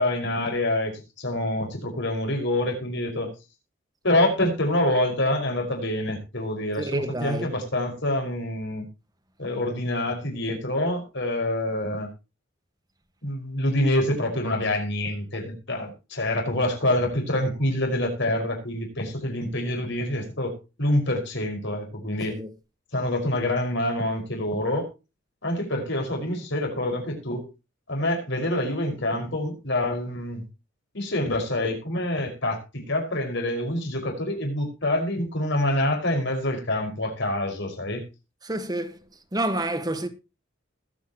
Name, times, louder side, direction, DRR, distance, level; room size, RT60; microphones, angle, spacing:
voice 1, 0.0-3.3 4.0-8.9 9.4-12.1 13.2-20.5 20.8-22.4 22.9-24.9 25.4-27.5 27.9-30.4 30.9-38.0, left 1 dB, 60° left, 5.5 m, -26 dB
voice 2, 6.8-7.5 22.3-22.5 38.4-39.0 39.3-40.1, right 1 dB, 20° right, 1.6 m, -28 dB
20.5 x 8.8 x 3.0 m
head